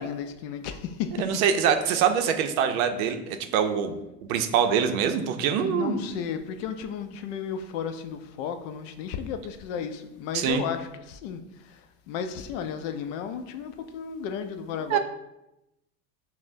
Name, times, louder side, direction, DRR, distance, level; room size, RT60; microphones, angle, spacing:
voice 1, 0.0-1.2 5.6-15.0, left 7 dB, 55° left, 8 dB, 0.5 m, -34 dB
voice 2, 1.2-3.9 4.3-6.0 10.3-10.6 14.9-15.0, right 7 dB, 60° right, 7 dB, 0.6 m, -24 dB
5.8 x 2.1 x 2.6 m, 0.91 s
hypercardioid pair, 110°, 47 cm